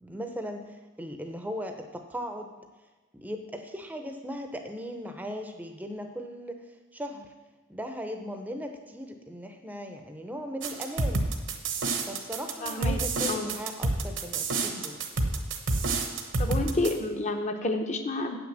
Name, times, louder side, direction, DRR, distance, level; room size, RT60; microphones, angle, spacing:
voice 1, 0.0-2.7 3.1-7.3 7.7-11.2 12.1-15.1, equal, 10° right, 5 dB, 0.7 m, -38 dB
sound 1, 10.6-16.9, right 3 dB, 60° right, 1.0 m, -28 dB
voice 2, 12.6-13.0 13.3-13.5 16.4-18.4, left 2 dB, 35° left, 5 dB, 0.8 m, -29 dB
8.2 x 6.1 x 7.4 m, 1.2 s
head